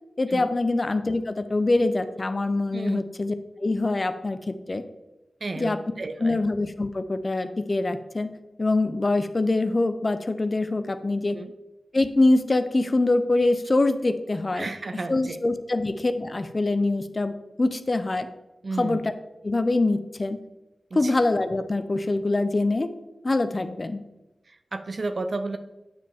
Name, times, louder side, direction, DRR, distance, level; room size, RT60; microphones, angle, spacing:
voice 1, 0.2-3.3 3.6-4.8 5.6-5.8 6.2-11.4 11.9-18.3 18.8-19.1 19.4-20.4 20.9-22.9 23.2-24.0, left 2 dB, 35° left, 10 dB, 0.5 m, -24 dB
voice 2, 5.4-6.4 11.3-11.5 14.6-15.4 18.6-19.0 20.9-21.1 24.5-25.6, right 3 dB, 50° right, 9 dB, 0.4 m, -32 dB
9.2 x 5.0 x 3.5 m, 1.0 s
wide cardioid pair, 105°, 0 cm